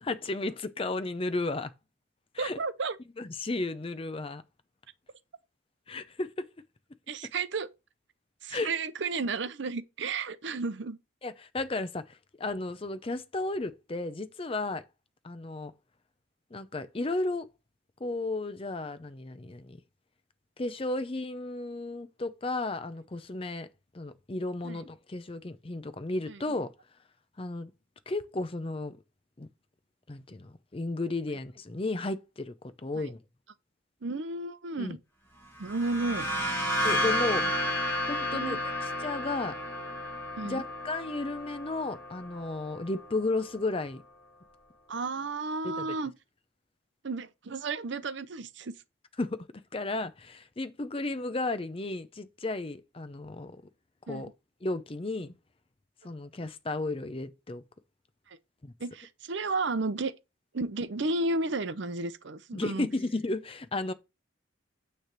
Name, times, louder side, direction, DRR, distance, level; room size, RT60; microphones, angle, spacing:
voice 1, 0.0-1.7 2.3-2.6 3.2-4.4 5.9-6.5 8.5-8.7 11.2-14.9 15.2-15.7 16.5-17.5 18.0-19.8 20.6-23.7 23.9-26.7 27.4-27.7 28.1-29.0 29.4-29.5 30.1-32.5 32.8-33.2 34.8-35.0 36.8-37.5 38.1-39.6 40.4-44.0 45.6-46.0 49.2-49.5 49.7-53.6 54.1-54.3 54.6-55.3 56.0-57.6 58.6-58.7 62.5-63.9, left 2 dB, 30° left, 0.5 m, -33 dB
voice 2, 2.4-3.0 7.1-7.7 8.4-11.0 24.6-24.8 26.3-26.4 32.9-33.0 34.0-35.0 35.6-36.3 38.3-38.6 40.4-40.6 44.9-46.1 47.0-48.7 54.1-54.2 58.3-58.4 58.8-60.1 60.5-62.9, right 3 dB, 60° right, 0.6 m, -32 dB
sound 1, 35.6-43.2, equal, 10° left, 1.4 m, -32 dB
9.2 x 3.3 x 5.9 m
head